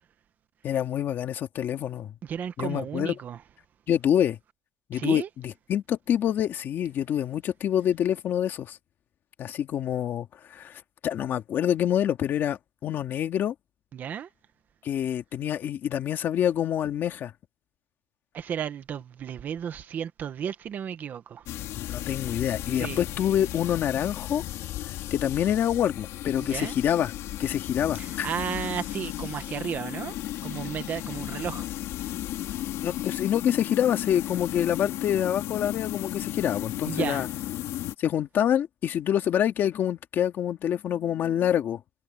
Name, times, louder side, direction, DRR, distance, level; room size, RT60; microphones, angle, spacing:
voice 1, 0.6-2.1 2.6-3.1 3.9-4.4 4.9-8.8 9.4-13.5 14.8-17.3 21.8-24.4 25.1-27.1 27.4-28.3 32.8-37.3 38.0-41.8, left 10 dB, 35° left, 2.0 m, -26 dB
voice 2, 2.2-3.4 4.9-5.3 13.9-14.3 18.3-21.5 22.7-23.0 26.5-26.7 28.0-30.1 30.4-31.7 36.8-37.3, right 8 dB, 30° right, 1.2 m, -33 dB
sound 1, 21.5-37.9, left 14 dB, 50° left, 3.0 m, -34 dB
cardioid pair, 180°, 6 cm